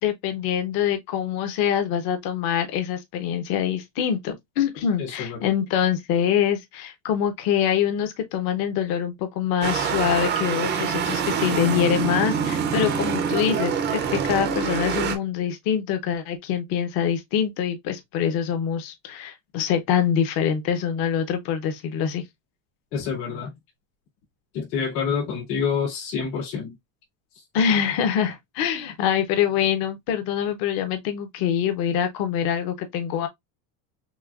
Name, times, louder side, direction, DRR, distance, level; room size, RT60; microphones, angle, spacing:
voice 1, 0.0-22.2 27.5-33.3, left 8 dB, 45° left, 0.8 m, -24 dB
voice 2, 5.0-5.5 22.9-23.5 24.5-26.7, left 6 dB, 80° left, 2.5 m, -27 dB
sound 1, 9.6-15.1, right 7 dB, 25° right, 0.5 m, -25 dB
6.2 x 2.3 x 2.4 m
cardioid pair, 170°, 49 cm